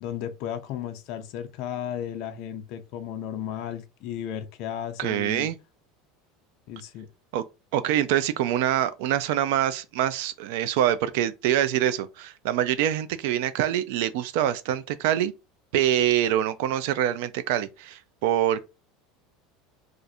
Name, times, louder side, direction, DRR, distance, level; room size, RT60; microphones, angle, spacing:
voice 1, 0.0-5.5 6.7-7.1, left 9 dB, 45° left, 0.5 m, -34 dB
voice 2, 5.0-5.6 7.3-7.4 7.7-15.3 15.7-18.6, right 11 dB, 65° right, 0.4 m, -25 dB
2.5 x 2.4 x 4.1 m
cardioid pair, 170°, 0 cm